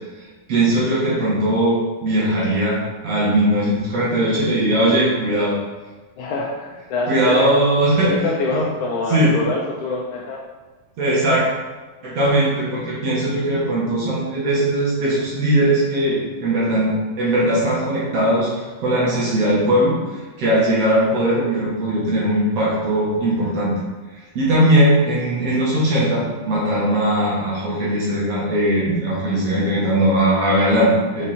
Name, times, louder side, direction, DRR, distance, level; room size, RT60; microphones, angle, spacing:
voice 1, 0.5-5.6 7.1-8.1 8.5-8.6 9.1-9.3 11.0-11.4 12.0-23.7 24.4-31.2, right 1 dB, 55° right, -6 dB, 2.5 m, -19 dB
voice 2, 6.2-7.5 8.1-10.4, left 3 dB, 75° left, -2 dB, 1.9 m, -25 dB
5.8 x 5.6 x 4.4 m, 1.2 s
omnidirectional pair, 4.1 m